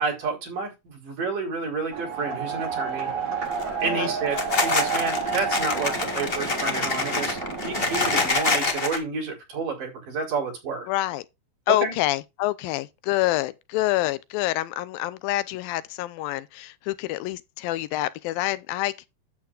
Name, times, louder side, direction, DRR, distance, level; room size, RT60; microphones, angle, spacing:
voice 1, 0.0-3.1 3.8-10.9 11.7-11.9, right 4 dB, 65° right, 6.1 m, -30 dB
sound 1, 1.9-8.3, right 5 dB, 50° right, 6.3 m, -30 dB
sound 2, 3.4-3.8 4.3-9.0, left 3 dB, 40° left, 0.8 m, -26 dB
voice 2, 10.9-11.2 11.7-19.1, left 16 dB, 85° left, 2.4 m, -27 dB
12.5 x 8.4 x 2.5 m
omnidirectional pair, 4.0 m